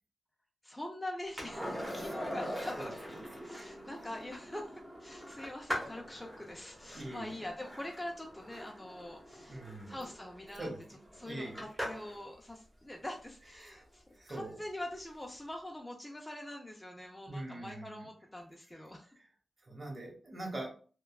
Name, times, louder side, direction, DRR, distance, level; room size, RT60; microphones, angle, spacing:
voice 1, 0.6-3.0 3.4-4.7 5.0-9.6 9.9-10.7 11.2-19.1, left 1 dB, 10° left, 1 dB, 0.5 m, -44 dB
Skateboard, 1.4-12.2 14.8-14.9, equal, 10° right, 1.4 m, -42 dB
voice 2, 3.4-3.7 6.9-7.4 9.5-9.9 10.6-10.8 11.2-11.7 13.6-13.8 14.1-14.6 17.3-18.1 19.6-20.7, right 1 dB, 40° right, 0 dB, 1.2 m, -43 dB
3.2 x 2.2 x 2.3 m, 0.40 s
cardioid pair, 55°, 0 cm